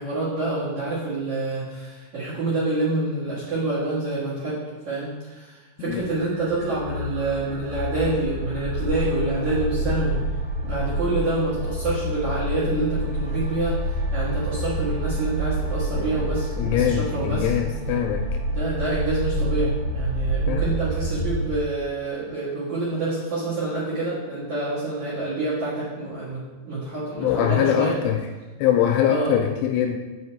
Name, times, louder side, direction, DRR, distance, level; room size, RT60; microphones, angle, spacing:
voice 1, 0.0-4.6 4.9-10.2 10.6-17.5 18.5-27.9 29.1-29.4, right 2 dB, 55° right, -8 dB, 2.3 m, -27 dB
sound 1, 6.0-21.6, right 1 dB, 75° right, 2.6 m, -28 dB
voice 2, 16.6-18.4 20.5-20.8 27.2-28.2 28.6-30.0, left 10 dB, 85° left, 4 dB, 2.9 m, -23 dB
6.3 x 5.5 x 4.7 m, 1.2 s
omnidirectional pair, 5.8 m